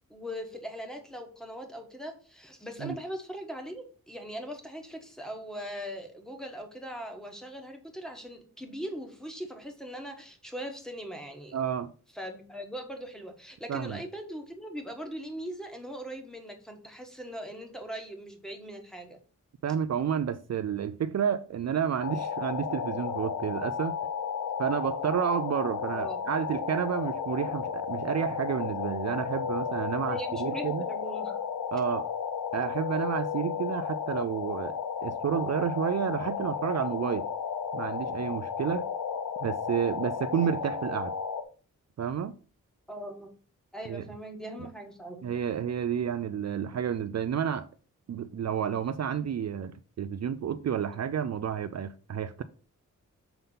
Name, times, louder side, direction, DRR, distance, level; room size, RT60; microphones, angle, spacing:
voice 1, 0.1-11.5 12.1-19.2 25.9-26.3 30.0-31.4 42.9-43.3 43.7-45.2, equal, ahead, 1.4 m, -40 dB
voice 2, 11.5-11.9 13.7-14.0 19.6-23.9 24.6-30.8 31.7-32.1 32.5-37.3 37.7-38.9 39.4-41.1 42.0-42.3 43.9-44.0 45.2-47.7 48.1-52.4, right 8 dB, 55° right, 0.4 m, -30 dB
sound 1, 22.0-41.4, left 7 dB, 90° left, 0.8 m, -33 dB
6.9 x 3.7 x 5.5 m
wide cardioid pair, 120°, 31 cm